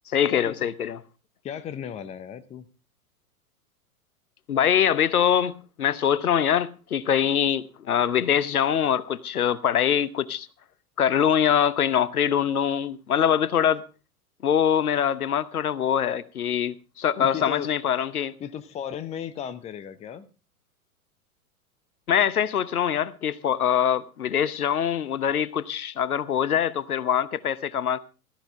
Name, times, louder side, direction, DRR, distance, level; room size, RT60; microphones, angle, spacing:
voice 1, 0.1-1.0 4.5-10.5 11.0-13.8 14.4-18.3 22.1-28.0, left 9 dB, 70° left, 0.9 m, -23 dB
voice 2, 1.4-2.6 17.2-17.7 18.4-20.3, left 9 dB, 15° left, 0.7 m, -35 dB
15.5 x 13.5 x 3.6 m
figure-of-eight pair, 100°, 45 cm